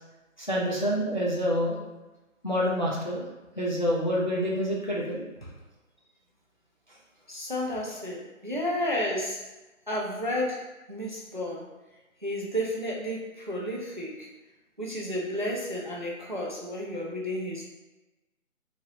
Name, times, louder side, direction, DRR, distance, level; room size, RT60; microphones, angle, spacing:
voice 1, 0.4-1.8 2.4-3.2 3.6-5.2, equal, 35° left, -5 dB, 0.5 m, -27 dB
voice 2, 7.3-9.4 9.9-11.7 12.2-14.3 14.8-17.7, left 1 dB, 40° right, -3 dB, 0.4 m, -32 dB
3.0 x 2.8 x 2.7 m, 1.1 s
figure-of-eight pair, 165°, 41 cm